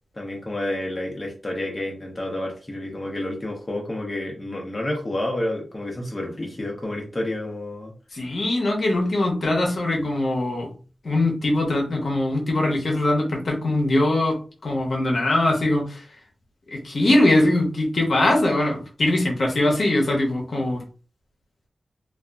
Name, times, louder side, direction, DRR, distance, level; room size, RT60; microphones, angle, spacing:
voice 1, 0.1-7.9, left 1 dB, 20° left, -1 dB, 0.6 m, -29 dB
voice 2, 8.1-10.7 11.0-16.0 16.7-20.8, left 1 dB, 55° left, 1 dB, 0.8 m, -22 dB
2.7 x 2.3 x 2.3 m, 0.37 s
wide cardioid pair, 135°, 0 cm